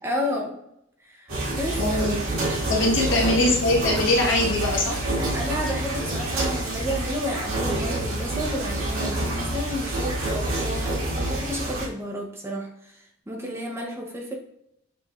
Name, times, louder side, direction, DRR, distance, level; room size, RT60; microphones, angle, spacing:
voice 1, 0.0-0.6 1.0-1.8 5.3-14.3, equal, 15° right, 1 dB, 0.6 m, -31 dB
sound 1, 1.3-11.9, right 1 dB, 85° right, 1.7 m, -27 dB
voice 2, 1.8-2.2 2.7-5.0, left 1 dB, 60° left, -2 dB, 1.2 m, -22 dB
6.7 x 3.1 x 2.3 m, 0.76 s
head